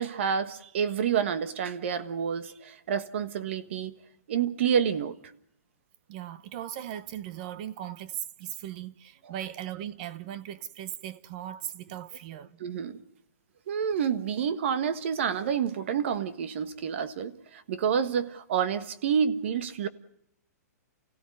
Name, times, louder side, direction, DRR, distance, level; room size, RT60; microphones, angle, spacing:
voice 1, 0.0-3.9 4.3-5.2 9.2-9.3 12.6-13.0 13.7-19.9, right 7 dB, 45° right, 1.5 m, -28 dB
voice 2, 6.1-12.6, right 11 dB, 25° right, 0.9 m, -38 dB
29.5 x 16.0 x 9.5 m
hypercardioid pair, 180°, 9 cm